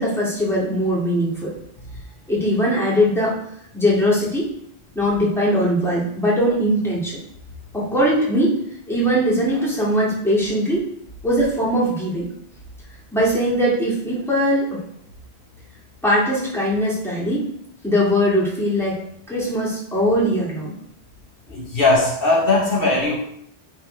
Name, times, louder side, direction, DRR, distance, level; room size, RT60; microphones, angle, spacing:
voice 1, 0.0-1.5 2.3-3.4 3.7-4.5 4.9-7.2 7.7-8.6 8.9-10.9 11.2-12.3 13.1-14.8 16.0-17.4 17.8-19.0 19.3-20.7, equal, ahead, -7 dB, 2.4 m, -20 dB
voice 2, 21.5-23.1, left 2 dB, 60° left, -3 dB, 1.4 m, -18 dB
10.5 x 4.0 x 3.4 m, 0.70 s
omnidirectional pair, 1.1 m